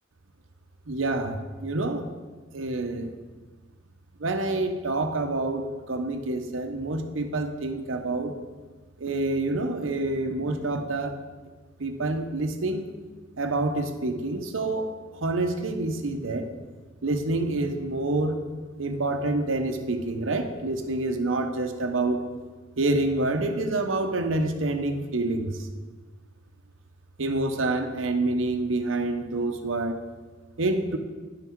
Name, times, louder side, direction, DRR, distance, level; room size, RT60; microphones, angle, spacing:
voice 1, 0.9-2.0 2.5-3.1 4.2-8.3 9.0-11.2 11.8-12.9 13.4-14.9 15.2-16.5 17.0-18.4 18.8-22.2 22.8-25.5 27.2-30.0 30.6-31.0, right 2 dB, 80° right, 6 dB, 0.8 m, -27 dB
10.5 x 5.9 x 4.6 m, 1.4 s
head